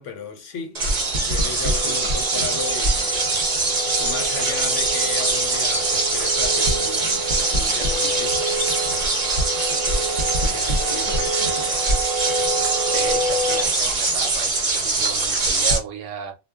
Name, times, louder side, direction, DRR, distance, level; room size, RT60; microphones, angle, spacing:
voice 1, 0.0-3.3 4.0-9.4 10.1-12.0, left 6 dB, 70° left, 0.9 m, -36 dB
sound 1, 0.7-15.8, right 3 dB, 45° right, 0.6 m, -22 dB
sound 2, 1.6-13.6, right 1 dB, 15° left, 0.6 m, -29 dB
voice 2, 12.9-16.4, right 8 dB, 75° right, 0.9 m, -34 dB
2.3 x 2.1 x 3.4 m
omnidirectional pair, 1.3 m